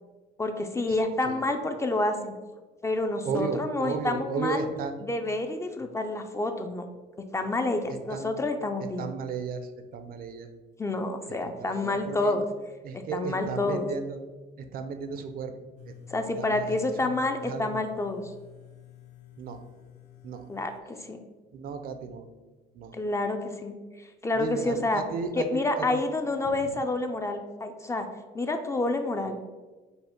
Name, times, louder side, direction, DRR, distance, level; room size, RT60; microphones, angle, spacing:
voice 1, 0.4-2.3 2.8-4.6 5.0-6.9 7.3-9.1 10.8-12.5 13.1-13.8 16.1-18.2 20.5-21.2 22.9-25.0 25.3-28.1 28.3-29.4, left 2 dB, 15° left, 5 dB, 0.4 m, -28 dB
voice 2, 3.2-4.9 8.1-8.3 9.0-10.5 11.6-12.3 12.8-14.2 14.6-15.5 16.4-16.8 17.4-17.8 19.4-19.6 20.2-20.4 21.5-22.2 22.7-22.9 24.3-26.0 26.5-26.8, right 5 dB, 60° right, 8 dB, 0.5 m, -34 dB
sound 1, 15.8-20.8, left 15 dB, 85° left, 0.5 m, -50 dB
5.3 x 2.1 x 4.3 m, 1.3 s
cardioid pair, 110°, 17 cm